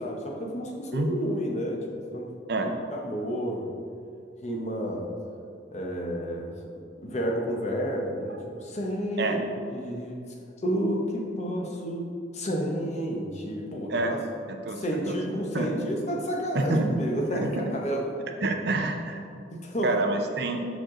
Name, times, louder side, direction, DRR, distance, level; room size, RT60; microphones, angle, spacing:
voice 1, 0.0-1.9 2.1-2.3 2.6-3.7 4.4-5.1 5.7-6.5 7.0-10.2 10.6-14.2 14.8-18.1 19.5-19.9, equal, 35° left, 0 dB, 0.8 m, -31 dB
voice 2, 14.5-15.2 15.5-15.9 16.5-17.0 17.3-17.7 18.4-19.2 19.8-20.6, right 2 dB, 55° right, 4 dB, 0.6 m, -27 dB
6.4 x 5.1 x 3.7 m, 2.4 s
head